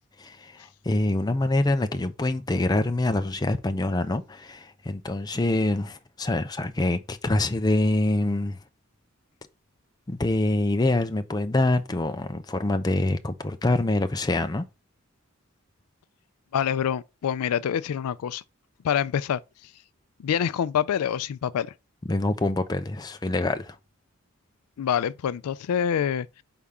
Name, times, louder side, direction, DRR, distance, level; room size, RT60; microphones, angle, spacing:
voice 1, 0.2-8.6 10.1-14.7 22.1-23.8, left 2 dB, 20° left, 0.5 m, -25 dB
voice 2, 16.5-18.4 18.8-19.4 20.2-21.7 24.8-26.4, left 8 dB, 90° left, 0.4 m, -26 dB
4.8 x 3.6 x 5.5 m
head